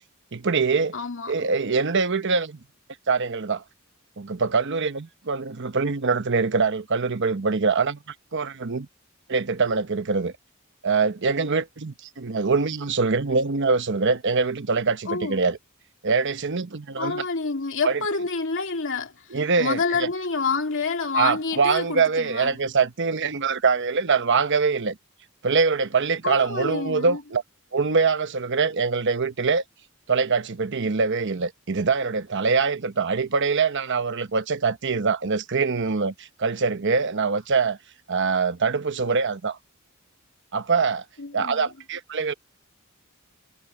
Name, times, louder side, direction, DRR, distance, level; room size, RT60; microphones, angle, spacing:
voice 1, 0.3-1.0 1.3-2.6 3.1-3.6 4.2-8.9 9.3-10.3 10.8-15.6 16.0-17.2 17.8-18.0 19.3-20.1 21.1-25.0 25.4-27.4 27.7-29.6 30.1-37.8 38.1-39.6 40.5-41.0 41.3-42.3, right 4 dB, 60° right, 1.0 m, -24 dB
voice 2, 0.9-1.3 15.1-15.4 17.0-19.1 19.6-22.5 26.2-27.2 41.2-41.7, left 4 dB, 65° left, 2.6 m, -28 dB
head